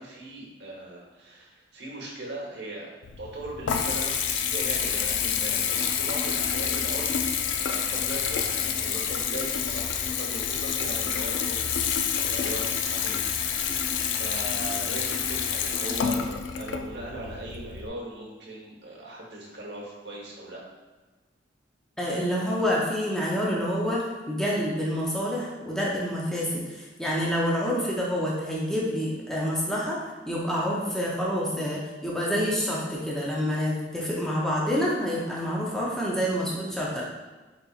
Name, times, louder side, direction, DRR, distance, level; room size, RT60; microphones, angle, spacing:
voice 1, 0.0-2.9 3.2-11.6 12.1-20.6, right 1 dB, 65° right, -4 dB, 1.0 m, -39 dB
Water tap faucet / Bathtub (filling or washing) / Trickle dribble, 3.0-17.9, left 7 dB, 85° left, 0.3 m, -28 dB
voice 2, 22.0-30.0 30.3-37.0, equal, 5° left, -5 dB, 0.6 m, -27 dB
4.2 x 3.9 x 2.4 m, 1.2 s
head